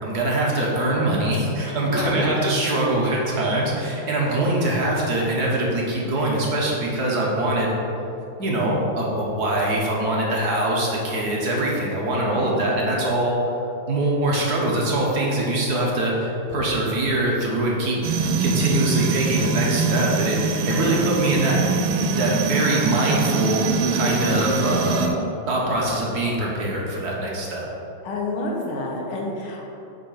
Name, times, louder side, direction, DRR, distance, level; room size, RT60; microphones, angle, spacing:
voice 1, 0.0-7.7 8.4-13.4 13.9-18.0 18.4-21.6 22.2-23.6 23.9-25.1 25.5-27.6, right 1 dB, 55° right, -3 dB, 1.4 m, -23 dB
voice 2, 1.9-2.3 12.3-12.7 20.6-21.1 28.0-29.7, left 2 dB, 80° left, -1 dB, 2.0 m, -29 dB
sound 1, 18.0-25.1, right 4 dB, 85° right, 1.6 m, -23 dB
7.9 x 4.1 x 5.7 m, 2.9 s
omnidirectional pair, 2.3 m